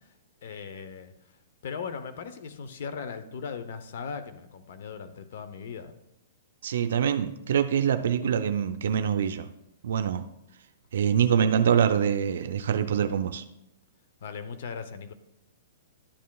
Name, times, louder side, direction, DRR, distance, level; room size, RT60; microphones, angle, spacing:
voice 1, 0.4-1.1 1.6-5.9 14.2-15.1, left 6 dB, 60° left, 10 dB, 0.7 m, -38 dB
voice 2, 6.6-9.5 9.8-10.2 10.9-13.4, right 8 dB, 70° right, 9 dB, 0.5 m, -25 dB
11.5 x 7.4 x 2.3 m, 0.84 s
hypercardioid pair, 150°, 0 cm